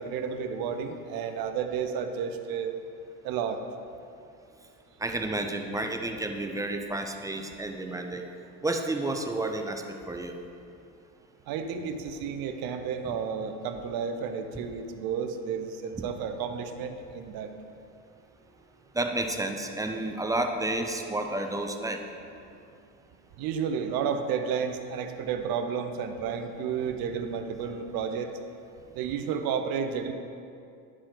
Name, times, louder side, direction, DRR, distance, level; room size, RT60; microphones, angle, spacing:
voice 1, 0.0-2.7 3.2-3.6 11.5-17.5 23.4-28.3 29.0-30.1, right 7 dB, 50° right, 7 dB, 0.7 m, -31 dB
voice 2, 5.0-8.2 8.6-10.4 18.9-22.0, right 2 dB, 10° right, 4 dB, 0.3 m, -31 dB
10.0 x 4.9 x 3.8 m, 2.5 s
supercardioid pair, 95°, 45 cm